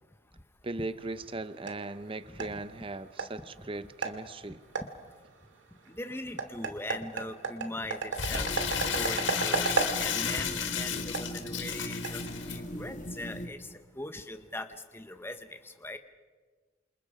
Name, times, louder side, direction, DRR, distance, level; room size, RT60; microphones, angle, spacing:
voice 1, 0.6-4.6, right 2 dB, 30° right, 13 dB, 0.8 m, -38 dB
sound 1, 1.0-12.8, right 4 dB, 80° right, 2.2 m, -37 dB
voice 2, 5.9-8.6 8.9-12.2 12.5-13.7 13.9-14.7 14.9-16.0, left 1 dB, 15° left, 8 dB, 1.1 m, -40 dB
Crumpling crinkling, 8.1-12.6, left 7 dB, 80° left, 2.0 m, -33 dB
sound 2, 8.3-13.5, equal, 40° left, 2.1 m, -39 dB
28.5 x 27.0 x 5.0 m, 1.4 s
head